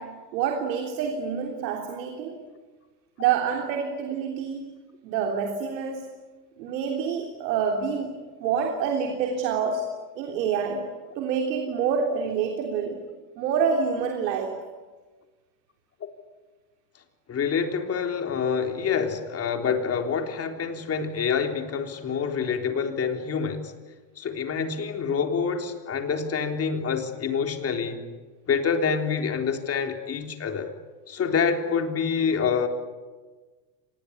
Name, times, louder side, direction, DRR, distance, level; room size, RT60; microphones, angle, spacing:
voice 1, 0.0-2.5 3.2-4.7 5.0-6.1 6.6-10.9 11.2-13.0 13.4-14.7, right 6 dB, 80° right, 4 dB, 3.6 m, -27 dB
voice 2, 17.3-23.7 24.2-28.1 28.5-30.7 31.1-32.7, left 6 dB, 30° left, 5 dB, 3.6 m, -27 dB
26.0 x 20.5 x 9.8 m, 1.3 s
supercardioid pair, 125°, 50 cm